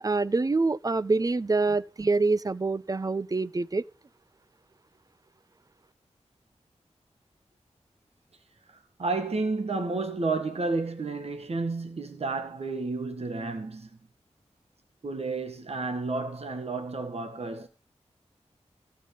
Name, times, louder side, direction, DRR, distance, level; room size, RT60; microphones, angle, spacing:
voice 1, 0.0-3.8, right 3 dB, 30° right, 0.6 m, -26 dB
voice 2, 8.7-13.9 15.0-17.7, right 3 dB, 60° right, 1.6 m, -31 dB
14.5 x 5.5 x 8.3 m
wide cardioid pair, 70°, 12 cm